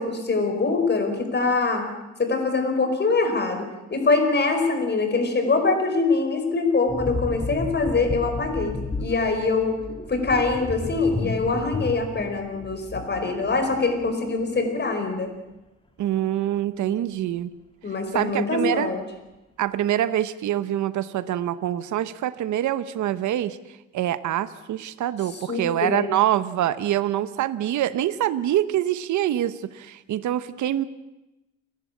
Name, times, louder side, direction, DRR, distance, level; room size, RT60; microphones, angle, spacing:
voice 1, 0.0-1.8 2.2-9.8 10.1-15.3 17.8-19.0 25.5-26.1, left 3 dB, 35° left, 6 dB, 5.0 m, -24 dB
sound 1, 6.9-14.3 14.5-14.8, left 2 dB, 15° left, 1.9 m, -33 dB
voice 2, 16.0-17.5 18.1-18.9 19.6-23.6 23.9-30.8, right 12 dB, 75° right, 14 dB, 1.0 m, -25 dB
30.0 x 11.5 x 8.6 m, 0.99 s
cardioid pair, 90°, 30 cm